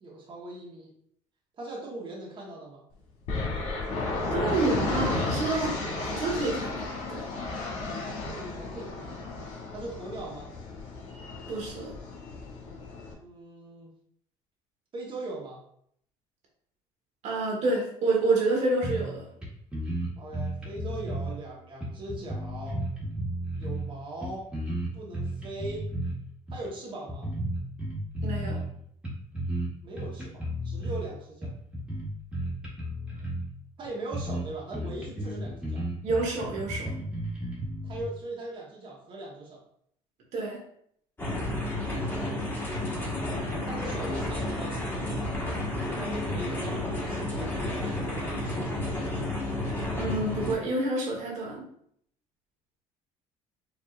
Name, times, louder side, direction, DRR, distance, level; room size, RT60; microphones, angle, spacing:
voice 1, 0.0-0.9 1.6-2.8 8.3-9.2 9.7-10.5 13.1-13.9 14.9-15.6 20.2-22.8 23.5-24.5 24.9-25.9 26.5-27.3 29.8-31.5 33.8-35.9 37.8-39.6 43.7-45.3 45.8-49.2, right 2 dB, 40° right, -3 dB, 1.1 m, -40 dB
sound 1, 3.3-13.1, left 3 dB, 70° left, 1.2 m, -33 dB
voice 2, 4.3-5.7 6.0-7.2 11.5-11.9 17.2-19.2 28.2-28.6 36.0-36.9 40.3-40.6 50.0-51.6, right 2 dB, 65° right, -2 dB, 1.3 m, -28 dB
sound 2, 18.8-19.2 19.4-19.5 19.7-21.4 21.8-23.9 24.2-26.1 26.5-26.7 27.1-28.7 29.0-29.7 30.0-31.0 31.4-33.5 33.8-33.9 34.1-34.5 34.7-38.0, right 1 dB, 10° right, 1.5 m, -33 dB
sound 3, 41.2-50.5, left 1 dB, 15° left, 1.4 m, -31 dB
5.0 x 2.7 x 2.4 m, 0.67 s
supercardioid pair, 95°, 13 cm